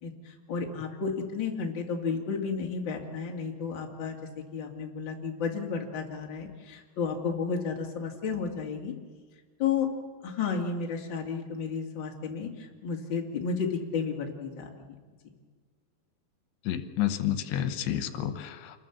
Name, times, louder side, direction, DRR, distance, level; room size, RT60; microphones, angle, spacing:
voice 1, 0.0-8.9 9.6-9.9 10.2-14.9, left 5 dB, 35° left, 1 dB, 2.6 m, -32 dB
voice 2, 16.7-18.8, left 11 dB, 85° left, 10 dB, 3.2 m, -30 dB
27.5 x 21.0 x 7.3 m, 1.5 s
omnidirectional pair, 4.8 m